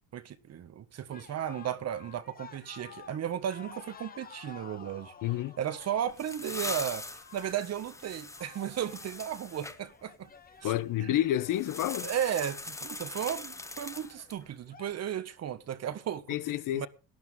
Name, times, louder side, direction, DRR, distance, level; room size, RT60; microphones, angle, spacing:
voice 1, 0.1-5.1 5.6-10.3 10.6-10.7 11.0-11.2 12.0-16.4 16.8-16.9, right 10 dB, 40° right, 1.5 m, -35 dB
sound 1, 1.1-14.9, left 6 dB, 25° left, 1.3 m, -52 dB
voice 2, 5.2-5.6 10.6-12.1 16.3-16.9, left 13 dB, 55° left, 1.0 m, -29 dB
sound 2, 5.8-9.8 11.5-14.4, left 2 dB, 10° left, 0.9 m, -41 dB
18.0 x 11.5 x 3.9 m
cardioid pair, 135°, 39 cm